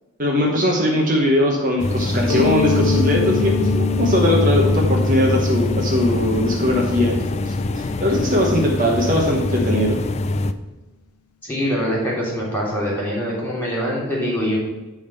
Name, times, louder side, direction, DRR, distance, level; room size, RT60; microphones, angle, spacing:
voice 1, 0.2-10.0, left 1 dB, 35° right, -1 dB, 1.1 m, -20 dB
sound 1, 1.8-10.5, left 2 dB, 30° left, 0.4 m, -23 dB
Mallet percussion, 2.3-7.8, left 7 dB, 90° left, 0.8 m, -27 dB
voice 2, 11.4-14.6, equal, 10° left, -4 dB, 3.1 m, -23 dB
10.5 x 3.7 x 6.8 m, 1.1 s
head